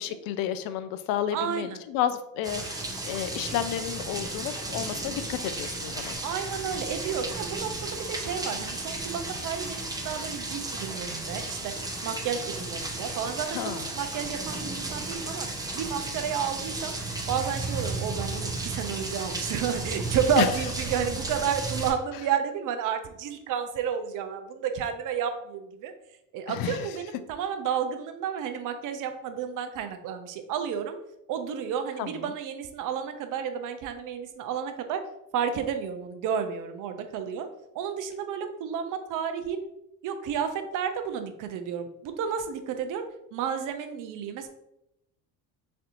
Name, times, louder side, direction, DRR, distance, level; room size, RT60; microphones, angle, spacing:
voice 1, 0.0-6.2 13.5-13.9 20.4-20.5 26.5-26.9 32.0-32.3, left 10 dB, 60° left, 12 dB, 0.5 m, -31 dB
voice 2, 1.3-1.8 6.2-11.7 12.0-15.5 15.7-16.9 17.3-25.9 26.3-31.0 31.3-35.0 35.3-37.5 37.7-39.7 40.0-43.1 43.3-44.5, right 7 dB, 50° right, 7 dB, 0.6 m, -31 dB
sound 1, 2.4-21.9, right 2 dB, 10° right, 0.6 m, -34 dB
4.2 x 2.6 x 2.5 m, 0.83 s
hypercardioid pair, 75°, 41 cm